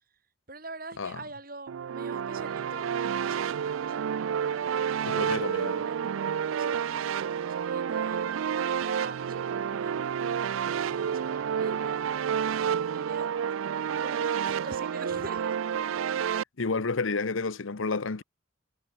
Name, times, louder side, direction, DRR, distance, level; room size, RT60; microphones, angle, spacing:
voice 1, 0.5-4.3 4.7-6.0 6.6-10.1 10.9-13.3 14.0-15.6, right 2 dB, 45° right, 6.6 m, -45 dB
sound 1, 1.7-16.4, right 8 dB, 90° right, 0.4 m, -30 dB
voice 2, 5.1-5.8 16.6-18.2, left 4 dB, 85° left, 0.9 m, -30 dB
head